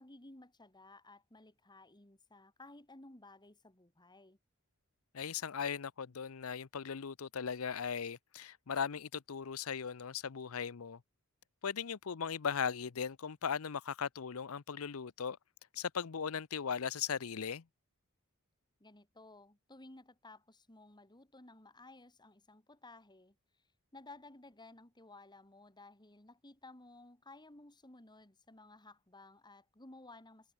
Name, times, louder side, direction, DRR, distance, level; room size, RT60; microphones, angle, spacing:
voice 1, 0.0-4.4 18.8-23.3 23.9-30.5, left 2 dB, 20° left, 2.7 m, -56 dB
voice 2, 5.1-11.0 11.6-15.4 15.7-17.6, left 7 dB, 70° left, 0.7 m, -38 dB
head